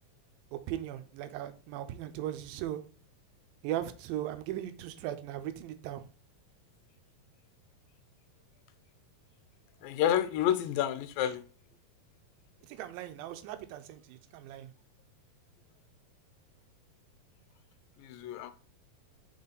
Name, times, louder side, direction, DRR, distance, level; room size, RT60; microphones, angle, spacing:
voice 1, 0.5-2.8 3.6-6.0 12.7-14.7, right 12 dB, 85° right, 2.4 m, -38 dB
voice 2, 9.8-11.4 18.0-18.5, left 11 dB, 90° left, 2.4 m, -29 dB
5.7 x 4.3 x 3.9 m
omnidirectional pair, 4.1 m